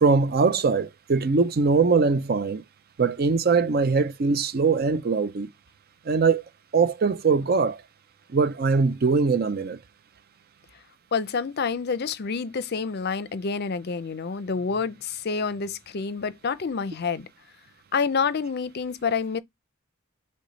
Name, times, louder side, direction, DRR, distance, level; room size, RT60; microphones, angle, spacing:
voice 1, 0.0-2.6 3.0-5.5 6.1-6.4 6.7-7.8 8.3-9.8, right 4 dB, 45° right, 0.4 m, -22 dB
voice 2, 11.1-17.3 17.9-19.4, left 5 dB, 50° left, 0.5 m, -28 dB
6.2 x 2.1 x 3.9 m
head